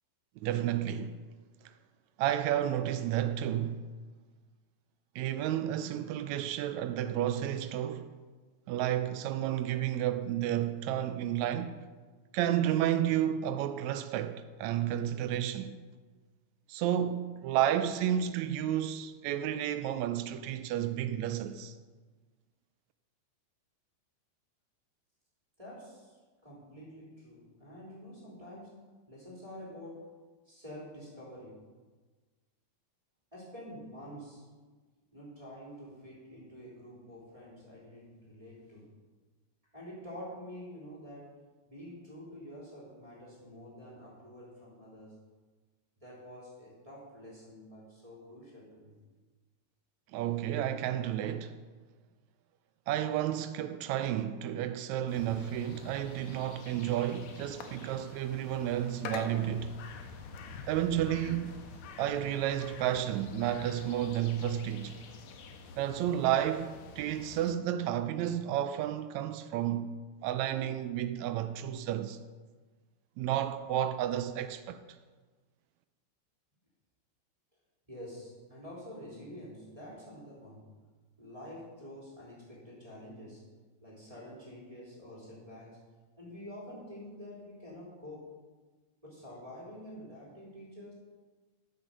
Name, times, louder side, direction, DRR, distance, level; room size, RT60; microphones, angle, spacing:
voice 1, 0.4-1.1 2.2-3.8 5.2-8.1 8.7-11.8 12.3-15.8 16.7-21.7 50.1-51.5 52.9-59.8 60.7-61.6 62.0-65.0 65.8-72.2 73.2-74.8, right 11 dB, 80° right, 1.8 m, -31 dB
voice 2, 25.6-28.8 29.1-30.1 30.5-31.6 33.3-34.4 35.1-38.9 39.7-41.3 41.7-45.2 46.0-48.9 77.9-80.7 81.2-83.5 83.8-85.8 86.2-88.3 89.0-90.9, equal, 10° right, 3.4 m, -48 dB
sound 1, 55.1-67.5, left 5 dB, 75° left, 2.0 m, -47 dB
13.0 x 6.8 x 5.3 m
omnidirectional pair, 3.4 m